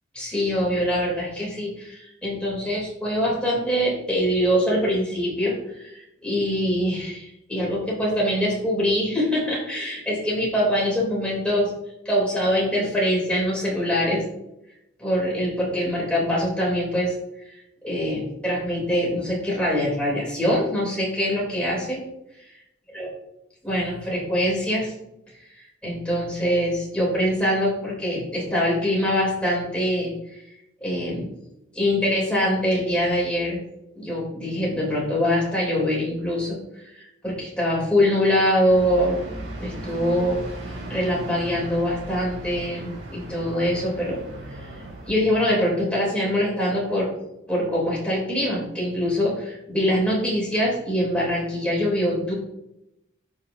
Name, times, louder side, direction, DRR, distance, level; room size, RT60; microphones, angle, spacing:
voice 1, 0.1-11.7 12.0-14.2 15.0-17.1 17.5-17.6 17.8-22.0 22.9-23.1 23.6-24.9 25.6-30.1 30.8-31.3 31.7-33.6 33.9-39.2 39.6-40.4 40.7-44.2 44.5-44.7 45.1-47.1 47.5-52.3, equal, 5° left, -5 dB, 3.1 m, -24 dB
sound 1, 38.7-45.2, right 1 dB, 70° right, 2.1 m, -37 dB
13.5 x 4.9 x 2.7 m, 0.84 s
head